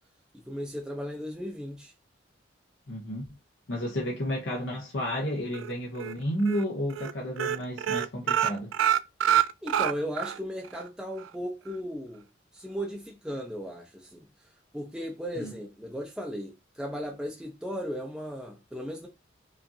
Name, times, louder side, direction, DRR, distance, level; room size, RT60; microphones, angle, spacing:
voice 1, 0.3-1.9 9.6-12.3 12.5-14.3 14.7-19.1, equal, 5° right, 0.6 m, -36 dB
voice 2, 2.9-3.3 3.7-8.7 15.4-15.5, equal, 70° left, 0.9 m, -31 dB
sound 1, 5.5-6.1 6.5-6.6 6.9-7.1 7.4-10.4 10.7-10.8 11.2-11.3, right 10 dB, 90° right, 0.3 m, -26 dB
5.1 x 2.5 x 2.7 m
head